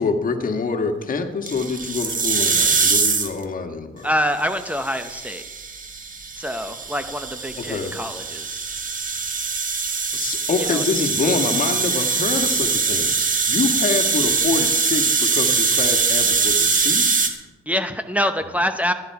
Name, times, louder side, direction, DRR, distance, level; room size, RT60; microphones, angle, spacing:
voice 1, 0.0-4.1 7.7-8.0 10.1-17.1, left 4 dB, 45° left, 6 dB, 1.7 m, -26 dB
sound 1, 1.5-3.4 4.5-17.3, right 5 dB, 40° right, 1.8 m, -22 dB
voice 2, 4.0-5.4 6.3-8.6 10.6-10.8 17.7-18.9, equal, 5° right, 8 dB, 0.8 m, -25 dB
16.0 x 10.5 x 4.8 m, 1.1 s
cardioid pair, 90°, 20 cm